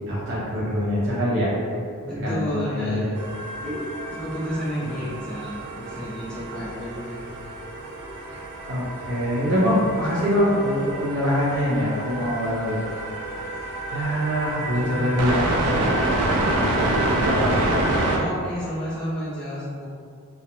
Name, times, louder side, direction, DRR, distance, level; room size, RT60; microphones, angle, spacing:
voice 1, 0.1-1.8 2.2-3.0 3.6-3.8 5.0-5.1 6.5-6.6 8.3-12.8 13.3-15.9 16.5-17.6, equal, 55° right, -8 dB, 0.8 m, -25 dB
voice 2, 2.0-3.2 4.1-7.2 18.1-19.9, equal, 5° left, -10 dB, 0.4 m, -31 dB
sound 1, 3.2-18.2, right 2 dB, 90° right, 0.4 m, -28 dB
2.5 x 2.1 x 2.8 m, 2.2 s
head